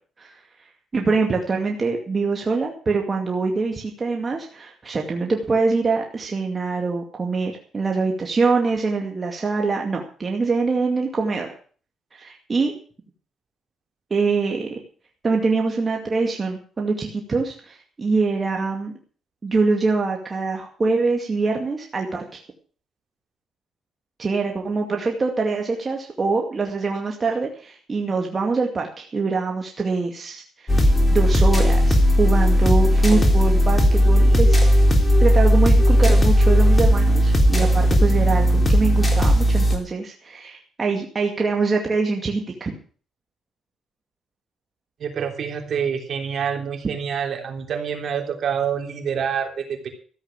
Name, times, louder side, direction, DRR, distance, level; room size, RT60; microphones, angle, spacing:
voice 1, 0.9-11.5 12.1-12.7 14.1-14.8 15.2-18.9 19.4-22.4 24.2-34.7 35.2-42.8, right 4 dB, 30° right, 1 dB, 2.2 m, -24 dB
sound 1, 30.7-39.8, equal, 20° left, 3.6 m, -16 dB
voice 2, 45.0-49.9, right 7 dB, 60° right, 4 dB, 3.4 m, -27 dB
14.0 x 7.9 x 7.5 m, 0.43 s
cardioid pair, 90°, 0 cm